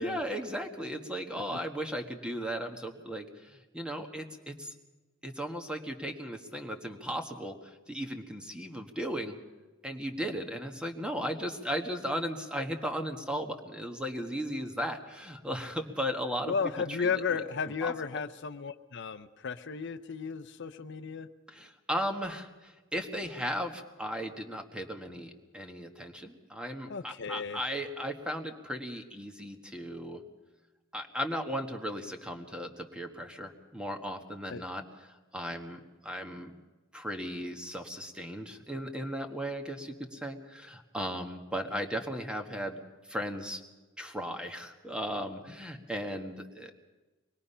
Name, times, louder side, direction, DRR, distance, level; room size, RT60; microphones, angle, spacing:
voice 1, 0.0-4.7 5.2-9.4 9.8-16.5 16.9-17.1 17.8-17.9 21.5-30.2 30.9-34.8 35.3-36.5 36.9-42.8 43.1-43.6 44.0-46.8, equal, 5° right, 4 dB, 1.6 m, -36 dB
voice 2, 16.5-21.3 26.9-27.6 34.5-34.6, left 5 dB, 60° left, 11 dB, 0.7 m, -34 dB
24.5 x 21.0 x 5.6 m, 1.2 s
head